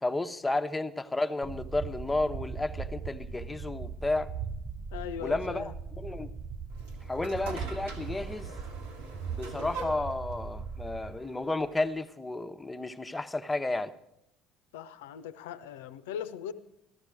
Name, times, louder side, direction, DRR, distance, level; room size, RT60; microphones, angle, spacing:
voice 1, 0.0-4.3 5.2-5.7 6.0-6.3 7.1-8.5 9.3-13.9, left 2 dB, 15° left, 0.9 m, -32 dB
sound 1, 1.4-11.2, right 5 dB, 35° right, 0.6 m, -39 dB
voice 2, 4.9-5.8 14.7-16.5, left 9 dB, 70° left, 0.7 m, -39 dB
sound 2, 6.7-12.0, right 3 dB, 75° right, 1.8 m, -44 dB
14.0 x 13.5 x 4.7 m
figure-of-eight pair, 55°, 0 cm